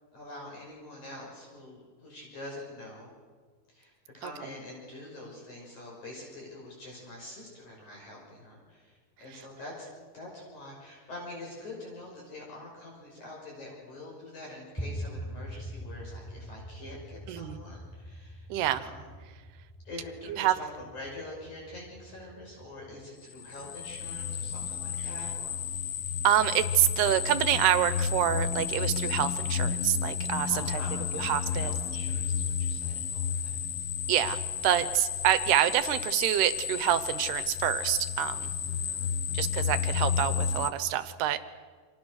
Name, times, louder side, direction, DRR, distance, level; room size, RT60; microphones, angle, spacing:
voice 1, 0.1-3.1 3.7-9.9 10.1-19.1 19.9-25.6 30.5-33.5 38.7-39.5, left 1 dB, 45° left, -2 dB, 7.3 m, -45 dB
sound 1, 14.8-23.0, equal, 5° left, 6.7 m, -43 dB
voice 2, 17.3-17.6 18.5-18.8 20.3-20.6 26.2-30.8 31.2-31.7 34.1-38.5 39.3-41.5, right 12 dB, 75° right, 13 dB, 3.1 m, -27 dB
sound 2, 23.3-40.7, left 7 dB, 70° left, 1.4 m, -32 dB
29.5 x 26.5 x 6.6 m, 1.5 s
omnidirectional pair, 4.7 m